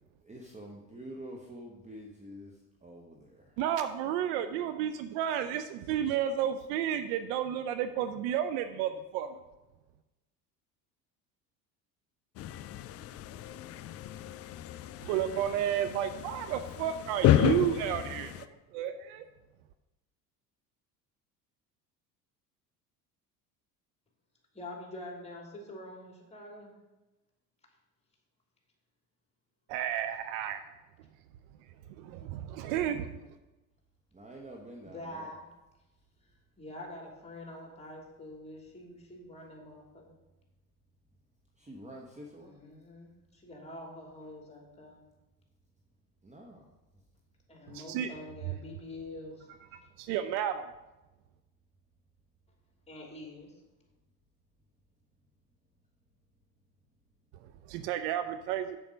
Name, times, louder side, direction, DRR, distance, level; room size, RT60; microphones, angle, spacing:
voice 1, 0.2-2.5 2.8-3.6 4.6-4.7 34.1-35.3 41.6-42.5 46.2-46.7, right 1 dB, 15° right, 0 dB, 1.2 m, -47 dB
voice 2, 3.6-9.4 15.0-18.5 18.7-19.3 29.7-30.6 32.0-33.1 47.7-48.1 50.0-50.6 57.7-58.8, right 10 dB, 60° right, 10 dB, 0.6 m, -32 dB
sound 1, 12.4-18.5, left 11 dB, 35° left, 0.4 m, -31 dB
voice 3, 24.5-26.7 34.8-35.5 36.6-40.2 42.3-45.0 47.5-49.5 52.9-53.5, left 1 dB, 15° left, -1 dB, 3.0 m, -46 dB
7.1 x 7.0 x 5.1 m, 1.0 s
hypercardioid pair, 65°, 48 cm